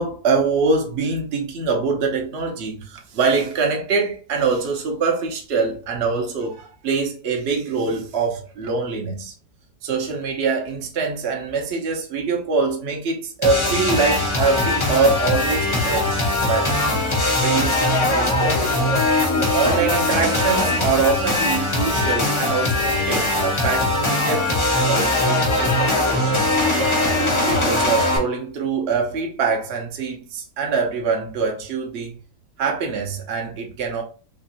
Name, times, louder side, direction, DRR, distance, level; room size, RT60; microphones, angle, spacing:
voice 1, 0.0-9.3 9.8-16.8 17.4-18.7 19.5-26.6 27.5-32.1 32.6-34.0, right 4 dB, 55° right, 0.7 m, -24 dB
sound 1, 13.4-28.2, left 1 dB, 35° left, 0.5 m, -20 dB
3.4 x 3.0 x 2.8 m
omnidirectional pair, 1.9 m